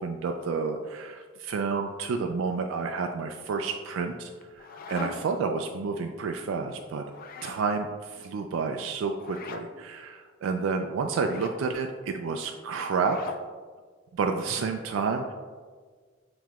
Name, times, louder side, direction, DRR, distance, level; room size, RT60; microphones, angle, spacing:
voice 1, 0.0-4.3 4.6-7.0 7.4-13.2 14.1-15.3, right 4 dB, 80° right, 4 dB, 0.3 m, -30 dB
sound 1, 4.4-5.4 7.1-7.6 9.2-9.7 11.2-11.6 12.9-13.5, left 5 dB, 45° left, 0.3 m, -41 dB
7.3 x 3.0 x 2.4 m, 1.5 s
head